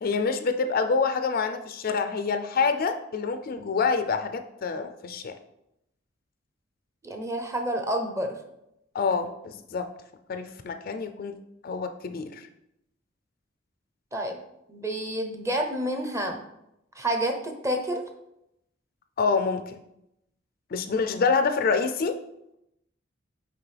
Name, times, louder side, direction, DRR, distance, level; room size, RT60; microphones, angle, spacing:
voice 1, 0.0-5.3 8.9-9.9 10.3-11.3 11.6-12.5 19.2-19.6 20.7-22.1, left 5 dB, 50° left, 8 dB, 0.4 m, -26 dB
voice 2, 7.0-8.4 14.1-14.4 14.7-16.4 16.9-18.0, right 1 dB, 15° right, 4 dB, 0.7 m, -29 dB
5.9 x 4.7 x 3.3 m, 0.81 s
head